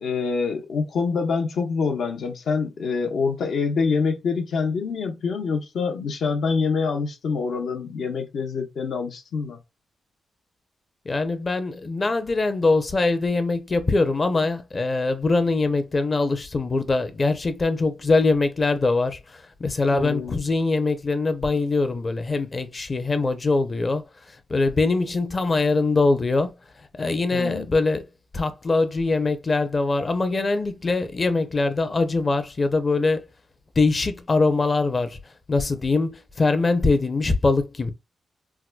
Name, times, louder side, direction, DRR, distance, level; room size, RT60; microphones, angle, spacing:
voice 1, 0.0-9.6 19.9-20.3 27.3-27.7, left 5 dB, 75° left, 0.8 m, -26 dB
voice 2, 11.1-26.5 27.0-28.0 28.3-33.2 33.8-35.2 35.5-37.9, left 3 dB, 30° left, 0.6 m, -23 dB
4.6 x 2.2 x 2.2 m
wide cardioid pair, 120°, 0 cm